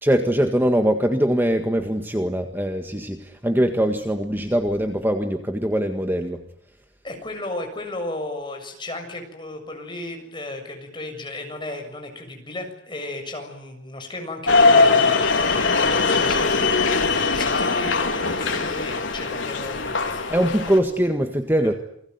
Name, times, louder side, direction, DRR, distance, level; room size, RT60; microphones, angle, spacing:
voice 1, 0.0-6.4 20.3-21.7, equal, 10° right, 6 dB, 1.8 m, -22 dB
voice 2, 7.0-20.2 21.6-21.7, left 2 dB, 25° left, 4 dB, 7.1 m, -35 dB
sound 1, 14.5-20.8, left 4 dB, 75° left, 4.0 m, -20 dB
29.0 x 20.5 x 9.5 m, 0.71 s
head